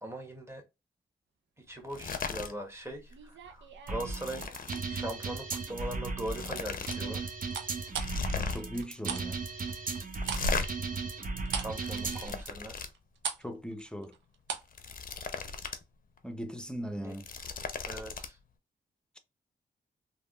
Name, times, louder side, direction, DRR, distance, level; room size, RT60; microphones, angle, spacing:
voice 1, 0.0-0.6 1.6-7.3 11.5-12.8 17.0-17.1 17.9-18.4, right 1 dB, 15° right, 1.1 m, -41 dB
sound 1, 1.9-2.5 2.9-3.1 3.5-4.8 5.8-5.9 6.2-7.0 7.3-7.4 7.9-8.8 10.2-10.7 11.5-12.9 14.5-15.8 16.2-16.3 17.0-18.3, left 4 dB, 50° left, 0.5 m, -36 dB
sound 2, 3.1-4.8 5.3-5.7 7.5-9.3 9.5-14.8 15.0-15.2, right 7 dB, 90° right, 0.5 m, -40 dB
sound 3, 3.9-12.5, right 4 dB, 50° right, 0.8 m, -36 dB
voice 2, 8.3-9.4 13.4-14.1 16.2-17.2, equal, 5° left, 0.6 m, -39 dB
3.4 x 2.2 x 2.3 m
cardioid pair, 60°, 19 cm